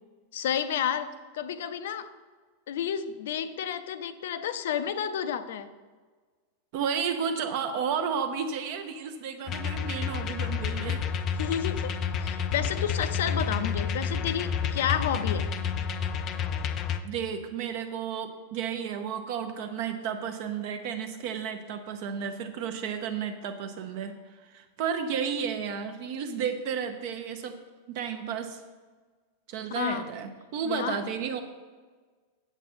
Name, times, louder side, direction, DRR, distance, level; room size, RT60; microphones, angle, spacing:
voice 1, 0.3-2.1 2.7-5.7 11.4-11.9 12.2-15.5 29.7-30.0 30.6-31.0, left 9 dB, 70° left, 12 dB, 0.6 m, -31 dB
voice 2, 6.7-11.0 17.0-24.1 24.4-27.6 27.9-28.6 29.5-31.4, right 7 dB, 40° right, 6 dB, 0.6 m, -32 dB
sound 1, 9.5-17.0, left 6 dB, 25° left, 0.4 m, -30 dB
8.1 x 8.0 x 4.3 m, 1.4 s
supercardioid pair, 175°, 0 cm